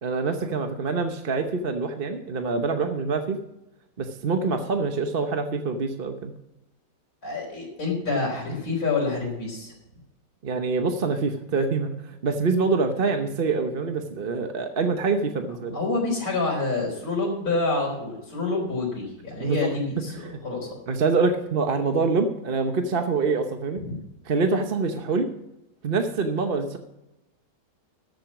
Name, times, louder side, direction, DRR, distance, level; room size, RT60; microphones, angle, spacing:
voice 1, 0.0-3.4 4.0-6.3 10.4-15.8 19.4-19.7 20.2-20.4 20.9-23.8 24.2-25.3 25.8-26.8, right 4 dB, 40° right, 6 dB, 0.9 m, -25 dB
voice 2, 7.2-9.7 15.7-20.7 23.8-24.0, left 3 dB, 55° left, -4 dB, 4.3 m, -27 dB
13.5 x 7.9 x 6.0 m, 0.91 s
omnidirectional pair, 1.9 m